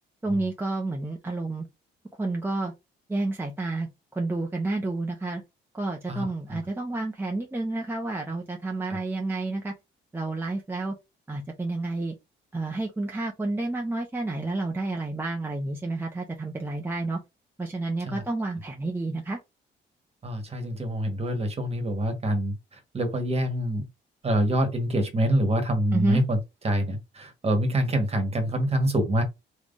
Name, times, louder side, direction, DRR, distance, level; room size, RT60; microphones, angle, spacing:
voice 1, 0.2-1.7 2.2-2.7 3.1-5.4 5.7-9.7 10.1-11.0 11.3-12.1 12.5-17.2 17.6-19.4 25.9-26.2, right 2 dB, 10° right, 0.8 m, -30 dB
voice 2, 6.1-6.6 8.9-9.0 18.1-18.2 20.2-23.9 24.2-26.4 26.6-29.2, right 1 dB, 30° right, 1.4 m, -26 dB
3.5 x 3.1 x 2.6 m
cardioid pair, 90°, 20 cm